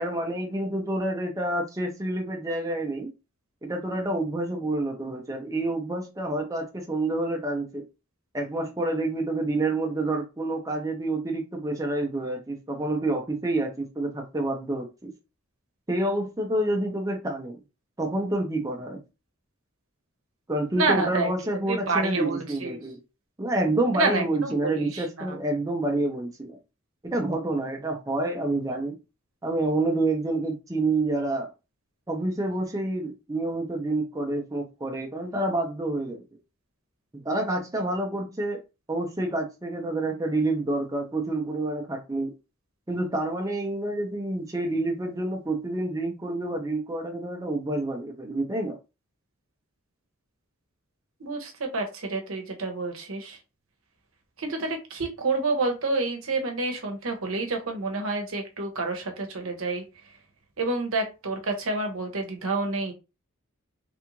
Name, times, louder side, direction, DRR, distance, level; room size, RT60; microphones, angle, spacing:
voice 1, 0.0-3.1 3.6-7.8 8.3-15.1 15.9-17.6 18.0-19.0 20.5-23.0 23.4-26.6 27.0-29.0 29.4-31.5 32.1-36.2 37.1-38.6 38.9-42.3 42.9-48.8, right 2 dB, 15° right, 0.6 m, -28 dB
voice 2, 20.8-21.3 21.7-22.8 23.9-25.4 51.2-53.4 54.4-59.8 60.6-62.9, right 3 dB, 70° right, 0.9 m, -28 dB
3.4 x 2.4 x 3.0 m
head